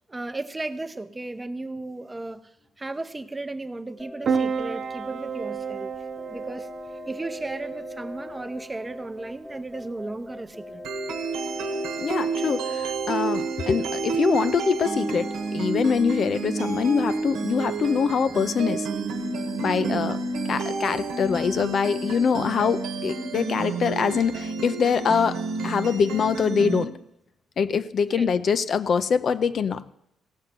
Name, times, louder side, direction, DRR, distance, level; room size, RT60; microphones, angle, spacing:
voice 1, 0.1-2.5 2.8-5.9 6.3-6.7 7.0-10.8 19.8-20.1 28.1-28.3, right 2 dB, 20° right, 10 dB, 0.7 m, -35 dB
sound 1, 4.0-12.7, left 2 dB, 20° left, 0.9 m, -41 dB
Piano, 4.2-19.2, right 6 dB, 50° right, 0.5 m, -36 dB
sound 2, 10.8-26.8, right 4 dB, 85° right, 1.2 m, -30 dB
voice 2, 12.0-18.9 19.6-20.2 20.5-26.9 27.6-29.8, left 6 dB, 55° left, 12 dB, 0.5 m, -24 dB
16.5 x 6.6 x 5.9 m, 0.82 s
cardioid pair, 90°, 0 cm